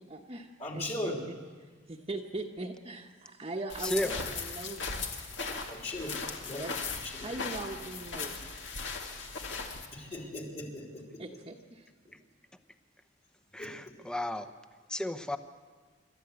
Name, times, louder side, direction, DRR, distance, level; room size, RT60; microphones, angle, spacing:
voice 1, 0.0-0.4 0.7-1.4 1.9-5.1 6.6-6.7 7.0-8.5 10.9-11.9, right 2 dB, 30° right, -1 dB, 1.1 m, -40 dB
voice 2, 0.6-1.2 5.0-5.1 5.7-6.7 7.0-7.3 9.9-11.2 13.6-13.7, left 1 dB, 35° left, 0 dB, 3.1 m, -38 dB
sound 1, 3.7-9.9, left 4 dB, 70° left, 2.2 m, -38 dB
voice 3, 3.8-4.2 13.5-14.5 14.9-15.4, left 1 dB, 5° left, 9 dB, 0.9 m, -33 dB
27.0 x 12.5 x 8.1 m, 1.5 s
head